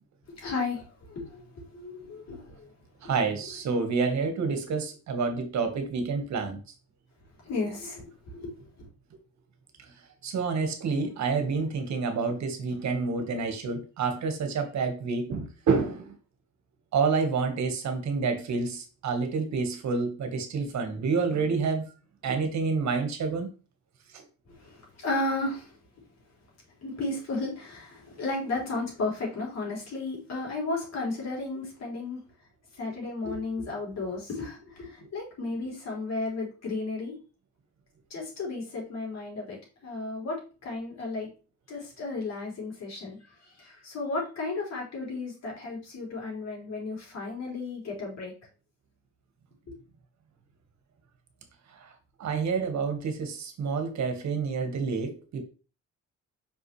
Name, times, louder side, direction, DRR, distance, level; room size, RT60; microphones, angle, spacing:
voice 1, 0.3-2.7 7.4-8.0 8.3-8.9 24.6-25.7 26.8-32.2 32.8-37.1 38.1-39.6 39.8-41.3 41.7-43.2 43.6-48.3 49.7-49.8, left 3 dB, 60° left, -2 dB, 3.6 m, -34 dB
voice 2, 3.0-6.6 10.2-16.1 16.9-21.9 22.2-23.5 24.1-24.2 51.8-51.9 52.2-55.4, right 4 dB, 65° right, 6 dB, 1.5 m, -28 dB
5.5 x 5.5 x 3.3 m, 0.34 s
cardioid pair, 90°, 30 cm